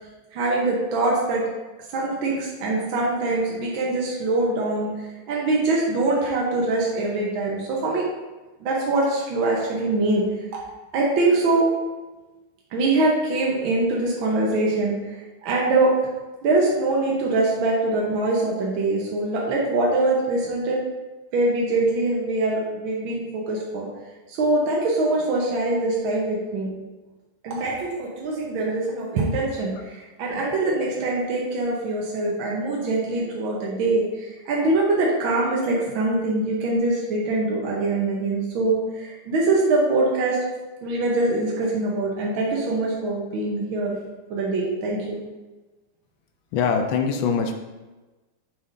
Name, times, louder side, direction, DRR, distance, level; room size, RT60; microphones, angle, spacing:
voice 1, 0.3-1.4 1.9-8.1 8.6-10.3 10.9-11.7 12.7-15.9 16.4-20.8 21.3-23.9 24.3-26.7 27.4-40.4 40.8-44.0 44.3-45.2, right 2 dB, 75° right, -3 dB, 1.8 m, -23 dB
voice 2, 46.5-47.5, left 6 dB, 75° left, 5 dB, 1.4 m, -22 dB
7.0 x 5.5 x 2.6 m, 1.2 s
omnidirectional pair, 2.3 m